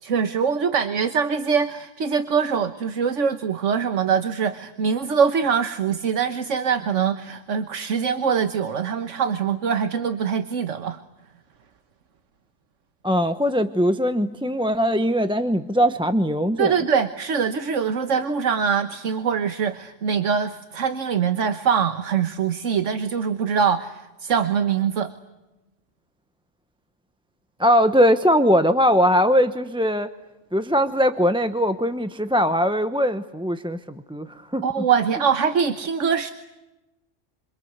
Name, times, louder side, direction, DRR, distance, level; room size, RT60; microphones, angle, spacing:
voice 1, 0.0-11.0 16.6-25.1 34.6-36.3, right 6 dB, 75° right, 9 dB, 1.5 m, -23 dB
voice 2, 13.0-16.8 27.6-30.1 30.5-34.6, equal, 5° right, 9 dB, 0.8 m, -20 dB
27.5 x 26.0 x 8.1 m, 1.0 s
omnidirectional pair, 1.3 m